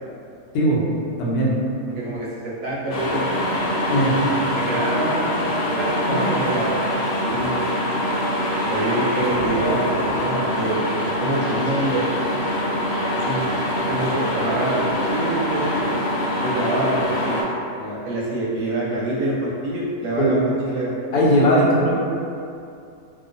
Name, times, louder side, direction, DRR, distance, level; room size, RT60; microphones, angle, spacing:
voice 1, 1.2-1.5 3.9-4.1 6.1-6.3 20.2-20.3 21.1-22.0, equal, 90° left, -5 dB, 1.2 m, -18 dB
voice 2, 1.9-7.6 8.7-12.2 12.5-12.6 13.1-13.5 13.9-15.8 16.4-21.0, right 1 dB, 70° right, -5 dB, 0.9 m, -26 dB
sound 1, 2.9-17.4, equal, 70° left, 0.6 m, -24 dB
2.9 x 2.1 x 2.5 m, 2.5 s
omnidirectional pair, 1.6 m